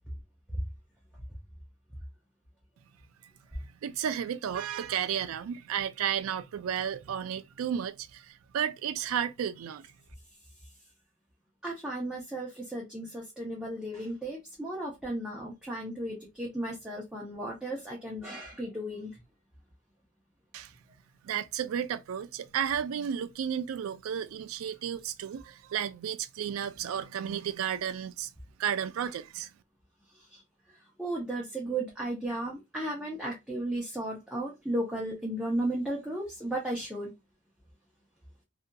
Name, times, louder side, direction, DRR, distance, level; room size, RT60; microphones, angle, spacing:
voice 1, 3.8-9.9 20.5-20.7 21.2-28.3 28.6-29.5, right 8 dB, 85° right, 0.3 m, -33 dB
voice 2, 11.6-19.1 30.3-30.4 31.0-37.1, right 1 dB, 5° right, 0.5 m, -34 dB
2.7 x 2.6 x 2.2 m
head